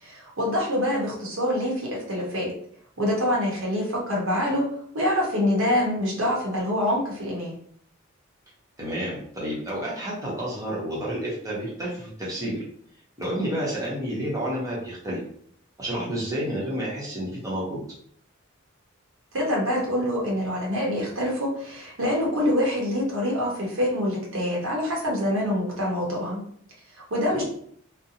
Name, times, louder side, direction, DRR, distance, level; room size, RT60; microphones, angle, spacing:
voice 1, 0.0-2.5 3.0-4.6 4.9-7.5 19.3-26.4 27.1-27.4, left 1 dB, 70° right, -3 dB, 0.9 m, -25 dB
voice 2, 8.8-12.6 13.2-15.2 15.8-17.8 27.3-27.4, equal, 15° right, -6 dB, 0.9 m, -30 dB
2.5 x 2.1 x 2.8 m, 0.63 s
head